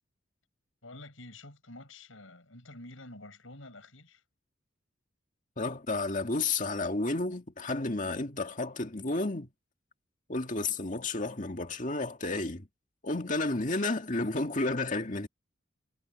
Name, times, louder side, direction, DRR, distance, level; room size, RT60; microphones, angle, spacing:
voice 1, 0.8-4.2, left 2 dB, 80° left, 7.2 m, -49 dB
voice 2, 5.6-9.5 10.3-12.7 13.0-15.3, left 2 dB, 40° left, 2.0 m, -31 dB
head